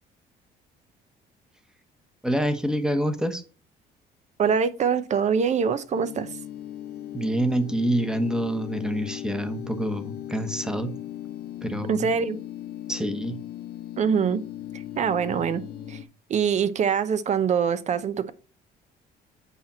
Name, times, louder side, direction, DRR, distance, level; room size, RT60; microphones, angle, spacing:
voice 1, 2.2-3.4 7.1-10.9 11.6-12.1 12.9-13.4, right 1 dB, 5° right, 1.1 m, -27 dB
voice 2, 4.4-6.4 11.9-12.4 14.0-14.4 14.7-16.0 16.3-18.3, right 7 dB, 45° right, 0.8 m, -24 dB
sound 1, 5.9-16.0, left 12 dB, 70° left, 1.1 m, -38 dB
8.4 x 4.4 x 4.3 m
cardioid pair, 110°, 17 cm